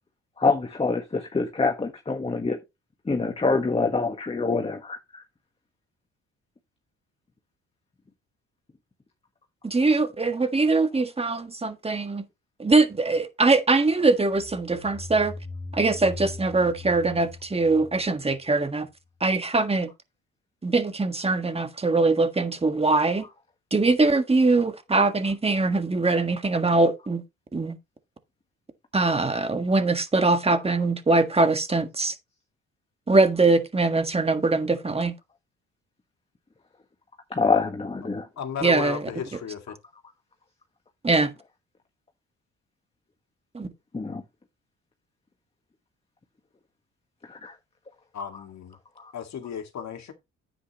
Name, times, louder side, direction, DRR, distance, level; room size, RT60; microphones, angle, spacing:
voice 1, 0.4-2.6 3.0-5.2 37.3-38.3 39.7-39.8 43.9-44.2 47.3-47.5 48.3-48.4 49.0-49.1, left 4 dB, 20° left, 1.4 m, -26 dB
voice 2, 9.6-12.2 12.6-15.3 15.7-18.9 19.2-19.9 20.6-23.3 23.7-27.2 27.5-27.8 28.9-32.1 33.1-35.1 38.6-39.1 41.0-41.3 43.5-43.7, right 3 dB, 20° right, 1.6 m, -22 dB
sound 1, 14.3-18.9, left 3 dB, 5° left, 3.1 m, -40 dB
voice 3, 38.4-39.8 48.1-48.8 49.1-50.1, left 7 dB, 65° left, 2.1 m, -34 dB
9.6 x 8.4 x 3.0 m
cardioid pair, 90°, 30 cm